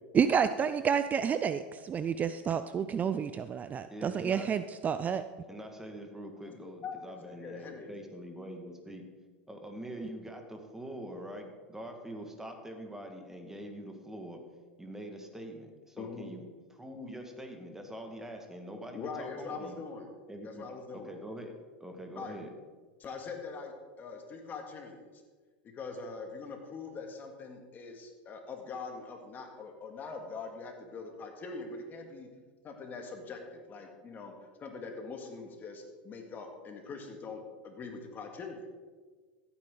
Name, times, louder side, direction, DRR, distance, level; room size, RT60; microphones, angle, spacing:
voice 1, 0.1-5.2, right 7 dB, 30° right, 11 dB, 0.4 m, -29 dB
voice 2, 3.9-4.5 5.5-9.1 9.5-14.4 14.8-16.4 16.7-19.8 20.3-20.7 20.9-21.5 21.8-22.5, equal, 10° right, 4 dB, 1.8 m, -44 dB
voice 3, 6.6-7.9 16.0-16.3 18.9-20.2 20.4-21.2 22.1-22.3 23.0-25.1 25.7-32.3 32.6-38.7, left 4 dB, 35° left, 3 dB, 2.2 m, -43 dB
14.5 x 9.0 x 3.9 m, 1.4 s
hypercardioid pair, 95°, 6 cm